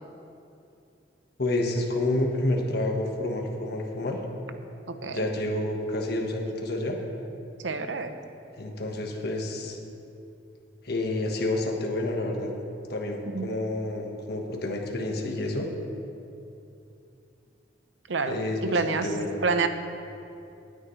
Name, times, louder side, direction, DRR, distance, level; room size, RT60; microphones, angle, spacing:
voice 1, 1.4-4.2 5.1-7.0 8.5-9.8 10.8-12.5 12.9-15.7 18.3-19.3, left 1 dB, 60° left, 1 dB, 1.4 m, -29 dB
voice 2, 4.9-5.3 7.6-8.2 13.3-13.5 18.1-19.1 19.4-19.7, right 4 dB, 90° right, 8 dB, 0.8 m, -28 dB
18.5 x 9.6 x 3.2 m, 2.7 s
head